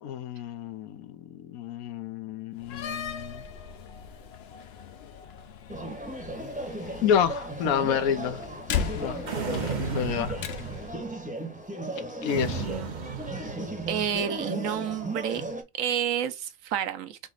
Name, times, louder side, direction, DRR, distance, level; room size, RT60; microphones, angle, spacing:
voice 1, 0.0-3.4 7.0-8.4 9.0-9.2 9.5-10.4 12.2-12.7, left 8 dB, 80° left, 1.2 m, -29 dB
Slam, 2.6-11.0, left 8 dB, 60° left, 0.7 m, -37 dB
sound 1, 5.7-15.6, right 1 dB, 5° right, 0.7 m, -36 dB
sound 2, 9.3-11.1 12.3-14.1, right 5 dB, 45° right, 0.7 m, -34 dB
voice 2, 12.6-12.9 13.9-15.4 15.8-17.2, right 9 dB, 70° right, 1.0 m, -30 dB
4.1 x 2.9 x 3.8 m
omnidirectional pair, 1.5 m